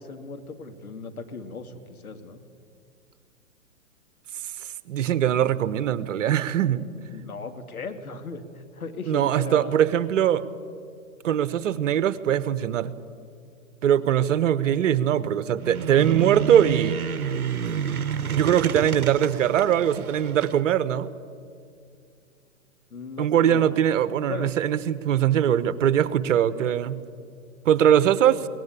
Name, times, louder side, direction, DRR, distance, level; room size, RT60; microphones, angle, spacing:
voice 1, 0.0-2.4 7.1-9.8 22.9-23.8 24.3-24.5 24.8-25.0, left 4 dB, 85° left, 6 dB, 2.3 m, -37 dB
voice 2, 4.9-6.9 9.1-10.4 11.2-12.9 13.8-17.0 18.2-21.1 23.2-27.0 27.6-28.5, right 10 dB, 60° right, 16 dB, 1.2 m, -21 dB
sound 1, 15.6-20.6, right 7 dB, 90° right, 0.9 m, -30 dB
22.5 x 18.5 x 8.8 m, 2.3 s
hypercardioid pair, 120°, 42 cm